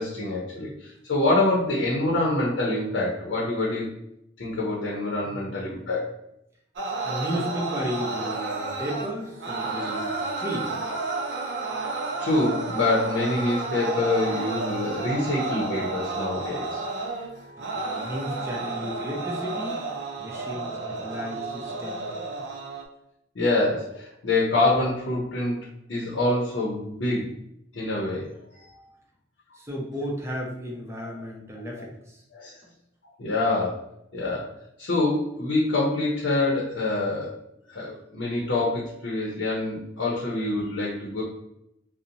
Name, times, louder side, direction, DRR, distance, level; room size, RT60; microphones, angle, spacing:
voice 1, 0.0-4.0 4.4-6.1 9.8-9.9 12.2-16.8 20.4-20.5 21.8-22.0 22.4-22.5 23.3-25.6 25.9-27.3 27.7-28.7 31.0-31.1 31.7-31.8 32.3-32.6 33.2-33.8 34.1-34.5 34.8-37.4 37.7-41.2, left 2 dB, 90° left, -3 dB, 0.6 m, -26 dB
voice 2, 5.2-5.9 7.0-10.8 17.6-19.9 20.2-20.8 21.0-22.1 29.5-32.2 32.6-32.7, equal, 15° right, -1 dB, 0.5 m, -34 dB
sound 1, 6.8-22.9, right 3 dB, 75° right, 0.5 m, -31 dB
2.7 x 2.0 x 2.5 m, 0.79 s
head